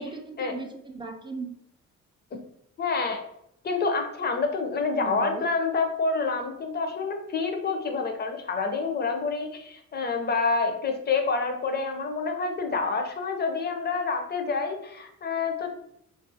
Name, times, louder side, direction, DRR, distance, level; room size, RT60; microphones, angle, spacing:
voice 1, 0.0-1.6 5.0-5.5, right 4 dB, 15° right, 4 dB, 0.4 m, -38 dB
voice 2, 2.8-3.2 3.6-15.7, left 4 dB, 35° left, 4 dB, 0.5 m, -28 dB
2.5 x 2.4 x 2.6 m, 0.74 s
cardioid pair, 90°, 30 cm